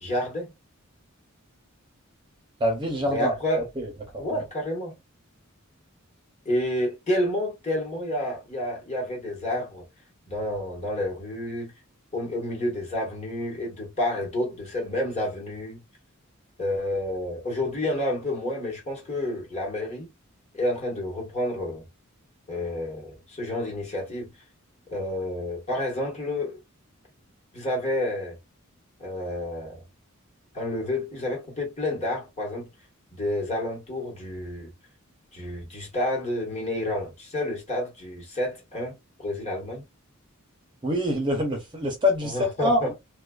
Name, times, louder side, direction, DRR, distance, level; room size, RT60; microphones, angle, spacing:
voice 1, 0.0-0.5 3.1-3.7 4.2-5.0 6.4-9.8 10.3-11.7 12.1-15.8 16.6-20.1 20.5-21.8 22.5-24.3 24.9-26.6 27.5-28.4 29.0-29.8 30.5-32.7 33.1-34.7 35.3-39.8 42.2-42.9, left 1 dB, 30° left, 1.2 m, -29 dB
voice 2, 2.6-3.3 3.8-4.4 40.8-42.9, left 1 dB, 20° right, 0.6 m, -26 dB
2.4 x 2.3 x 2.2 m
head